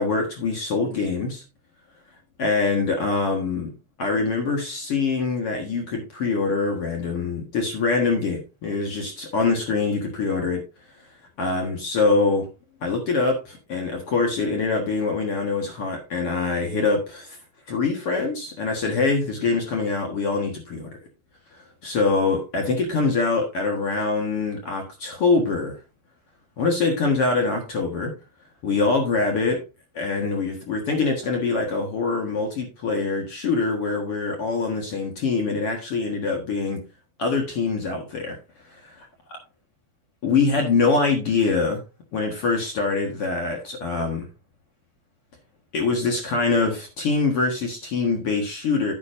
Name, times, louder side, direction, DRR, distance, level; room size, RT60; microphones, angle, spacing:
voice 1, 0.0-1.4 2.4-3.7 4.0-10.6 11.4-12.5 12.8-17.4 17.7-21.0 21.5-25.8 26.6-28.1 28.6-29.6 29.9-36.8 37.2-38.4 38.6-38.7 40.2-41.8 42.1-44.3 45.7-48.9, left 4 dB, 55° left, 1.6 m, -24 dB
9.5 x 9.5 x 2.6 m
omnidirectional pair, 5.0 m